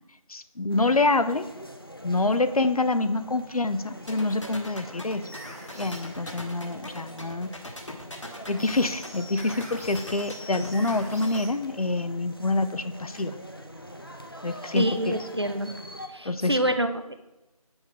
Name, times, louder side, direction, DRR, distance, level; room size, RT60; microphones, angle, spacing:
voice 1, 0.3-1.5 2.0-5.2 5.8-7.5 8.5-13.4 14.4-15.2 16.2-16.6, left 2 dB, 80° left, 11 dB, 0.6 m, -26 dB
sound 1, 0.7-16.1, equal, 40° left, 0.5 m, -44 dB
sound 2, 4.1-11.4, left 1 dB, 55° left, 1.2 m, -40 dB
sound 3, 5.2-6.0 8.6-11.5, left 1 dB, 25° right, 1.0 m, -43 dB
voice 2, 14.7-15.7 16.1-17.1, right 1 dB, 45° right, 8 dB, 0.5 m, -27 dB
6.2 x 4.7 x 5.7 m, 0.97 s
figure-of-eight pair, 180°, 19 cm